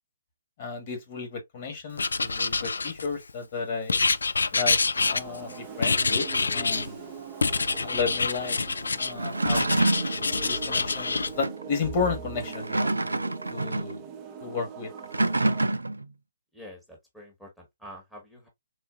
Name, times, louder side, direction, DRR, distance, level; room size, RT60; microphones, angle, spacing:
voice 1, 0.6-4.0 4.5-4.8 5.1-6.3 6.5-7.1 7.8-8.6 9.0-9.6 10.4-12.9 13.5-14.0 14.4-14.9, left 5 dB, 40° left, 1.4 m, -32 dB
Writing, 2.0-3.3 3.9-5.5 5.8-6.9 7.4-9.1 9.4-11.3, left 4 dB, 75° left, 0.3 m, -26 dB
sound 1, 4.9-15.6, right 7 dB, 25° right, 0.6 m, -42 dB
sound 2, 9.1-10.2 11.4-11.6 12.4-14.0 15.0-16.1, right 2 dB, 85° right, 0.3 m, -26 dB
voice 2, 16.5-18.5, equal, ahead, 1.1 m, -47 dB
3.8 x 2.4 x 2.4 m
figure-of-eight pair, 135°, 0 cm